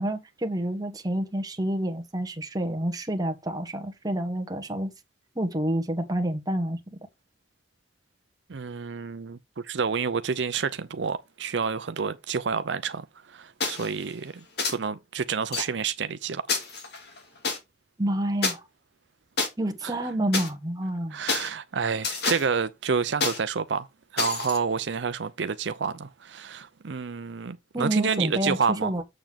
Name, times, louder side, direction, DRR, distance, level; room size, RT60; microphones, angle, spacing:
voice 1, 0.0-4.9 5.3-6.8 18.0-18.7 19.6-21.2 27.7-29.0, right 1 dB, 20° right, 1.3 m, -28 dB
voice 2, 8.5-9.4 9.6-16.4 19.8-19.9 21.1-23.9 24.1-28.9, right 5 dB, 75° right, 0.6 m, -29 dB
sound 1, 13.6-13.9 14.6-14.7 15.5-15.6 16.5-17.6 18.4-18.5 19.4-19.5 20.3-20.5 21.3-21.5 22.0-22.5 23.2-23.4 24.2-24.6, left 4 dB, 65° left, 2.3 m, -28 dB
7.6 x 6.9 x 3.5 m
head